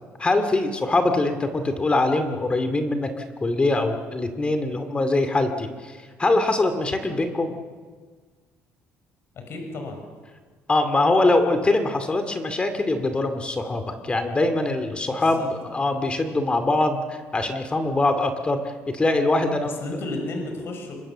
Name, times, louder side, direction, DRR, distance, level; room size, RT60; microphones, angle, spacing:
voice 1, 0.2-7.5 10.7-18.6 18.9-19.7, left 2 dB, 20° left, 8 dB, 2.4 m, -23 dB
voice 2, 9.3-10.0 15.1-15.9 19.6-21.0, left 2 dB, 55° left, 4 dB, 6.1 m, -33 dB
25.0 x 22.5 x 7.4 m, 1.5 s
cardioid pair, 105°, 5 cm